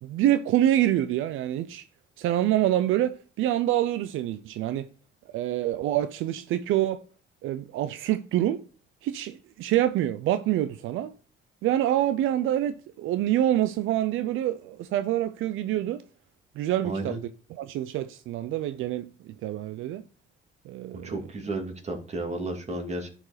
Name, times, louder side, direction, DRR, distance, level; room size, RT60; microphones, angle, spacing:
voice 1, 0.0-1.8 2.2-4.9 5.3-7.0 7.4-8.6 9.0-11.1 11.6-16.0 16.6-17.2 17.5-20.0 20.7-21.1, right 12 dB, 85° right, 0.5 m, -26 dB
voice 2, 16.8-17.2 20.9-23.1, right 2 dB, 35° right, 2.6 m, -33 dB
11.5 x 5.0 x 4.9 m
cardioid pair, 90°, 20 cm